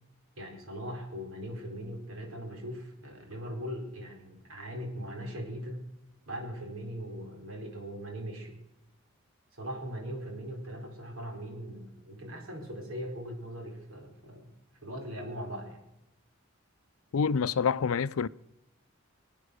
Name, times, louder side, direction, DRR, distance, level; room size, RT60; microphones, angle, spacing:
voice 1, 0.4-5.8 6.3-8.6 9.5-14.5 14.8-15.8, equal, 80° right, 4.5 m, -40 dB
voice 2, 17.1-18.3, left 6 dB, 85° left, 0.5 m, -27 dB
24.5 x 9.1 x 6.5 m
head